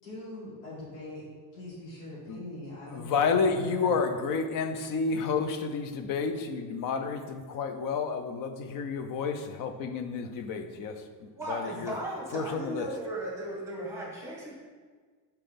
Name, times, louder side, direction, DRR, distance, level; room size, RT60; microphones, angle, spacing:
voice 1, 0.0-1.2 1.5-4.0, left 1 dB, 80° left, -7 dB, 2.0 m, -42 dB
voice 2, 2.9-11.9 12.3-12.9, left 5 dB, 40° left, 7 dB, 0.6 m, -30 dB
voice 3, 11.3-14.6, right 1 dB, 5° right, -3 dB, 1.4 m, -36 dB
5.9 x 4.4 x 5.1 m, 1.5 s
cardioid pair, 160°, 49 cm